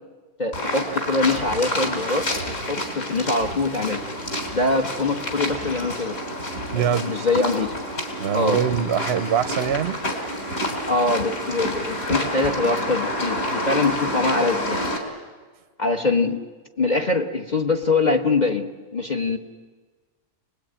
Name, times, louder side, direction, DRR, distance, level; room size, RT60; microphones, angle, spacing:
voice 1, 0.4-4.0 4.5-6.2 6.7-7.8 8.3-8.6 10.8-14.9 15.8-16.4 16.8-19.4, left 3 dB, 30° left, 4 dB, 1.2 m, -23 dB
sound 1, 0.5-15.0, equal, 55° left, 4.2 m, -28 dB
voice 2, 6.7-7.1 8.2-10.0, right 8 dB, 45° right, 10 dB, 1.0 m, -23 dB
28.0 x 20.0 x 8.9 m, 1.4 s
omnidirectional pair, 1.8 m